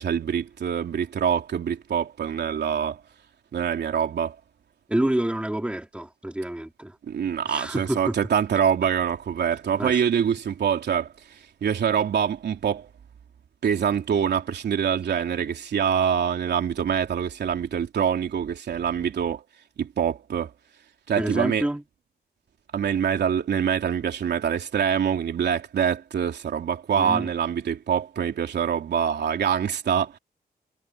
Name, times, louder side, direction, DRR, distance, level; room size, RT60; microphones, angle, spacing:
voice 1, 0.0-3.0 3.5-4.3 7.1-11.1 11.6-12.9 13.6-19.4 19.8-20.5 21.1-21.7 22.7-30.2, right 8 dB, 85° right, 3.3 m, -25 dB
voice 2, 4.9-7.0 7.4-8.1 9.8-10.0 21.2-21.8 26.9-27.3, right 1 dB, 5° right, 2.9 m, -28 dB
wide cardioid pair, 170°, 17 cm